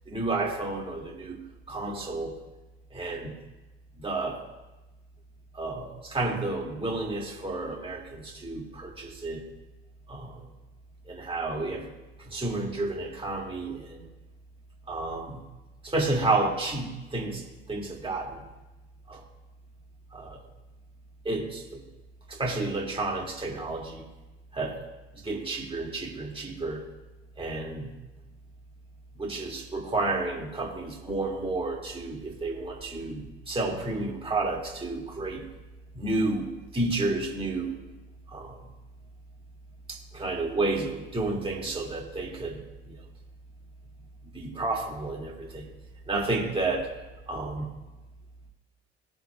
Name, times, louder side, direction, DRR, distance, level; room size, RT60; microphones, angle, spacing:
voice 1, 0.1-2.4 2.9-3.4 4.0-4.4 5.5-9.4 10.1-10.4 11.1-11.9 12.2-14.1 14.9-15.4 15.8-17.4 17.7-18.4 19.1-19.2 20.1-20.4 21.2-21.8 22.3-24.0 24.5-24.9 25.2-26.8 27.4-27.9 29.2-35.5 35.9-37.7 38.3-38.6 39.9-43.0 44.3-45.7 46.1-46.9 47.3-47.7, right 2 dB, 15° right, -1 dB, 2.2 m, -31 dB
18.0 x 7.1 x 2.3 m, 1.1 s
hypercardioid pair, 55°, 32 cm